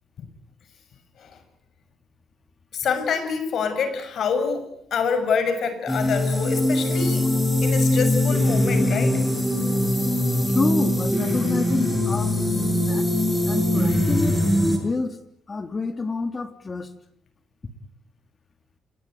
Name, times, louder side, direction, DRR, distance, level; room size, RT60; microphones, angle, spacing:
voice 1, 2.7-7.3 7.6-9.2, left 6 dB, 65° left, 10 dB, 6.4 m, -26 dB
sound 1, 5.9-14.8, left 1 dB, 10° left, 7.5 m, -22 dB
voice 2, 10.5-13.1 13.5-14.4 14.7-15.2 15.5-17.0, left 4 dB, 30° left, 9 dB, 3.3 m, -28 dB
28.5 x 21.0 x 9.2 m, 0.73 s
cardioid pair, 90°, 0 cm